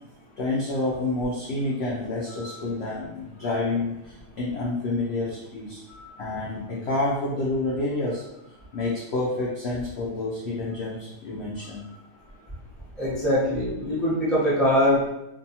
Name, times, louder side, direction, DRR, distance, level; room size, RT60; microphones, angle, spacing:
voice 1, 0.4-8.2 8.7-11.9, left 2 dB, 75° left, -4 dB, 0.6 m, -29 dB
voice 2, 13.0-15.1, equal, ahead, -9 dB, 0.5 m, -22 dB
2.6 x 2.3 x 2.7 m, 0.88 s
omnidirectional pair, 1.6 m